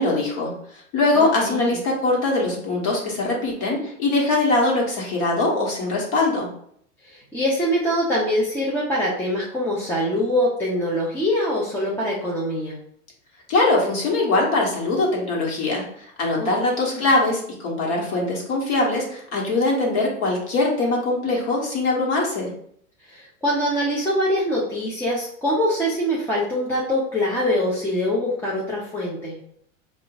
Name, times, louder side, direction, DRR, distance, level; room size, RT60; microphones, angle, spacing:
voice 1, 0.0-6.5 13.5-22.5, left 2 dB, 45° left, -2 dB, 1.4 m, -22 dB
voice 2, 1.1-1.8 7.0-12.8 16.4-17.1 23.0-29.4, equal, 5° left, -6 dB, 0.6 m, -24 dB
4.5 x 2.6 x 3.9 m, 0.67 s
supercardioid pair, 140°, 40 cm